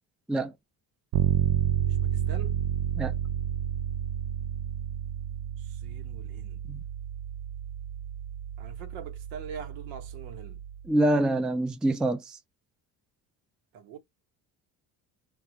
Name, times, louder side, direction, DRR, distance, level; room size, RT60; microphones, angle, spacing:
Bass guitar, 1.1-10.9, right 11 dB, 65° right, 0.5 m, -31 dB
voice 1, 1.9-2.6 5.6-6.6 8.6-10.6 13.7-14.0, right 7 dB, 85° right, 0.9 m, -43 dB
voice 2, 10.9-12.4, right 1 dB, ahead, 0.3 m, -25 dB
2.6 x 2.2 x 2.9 m
supercardioid pair, 80°, 44 cm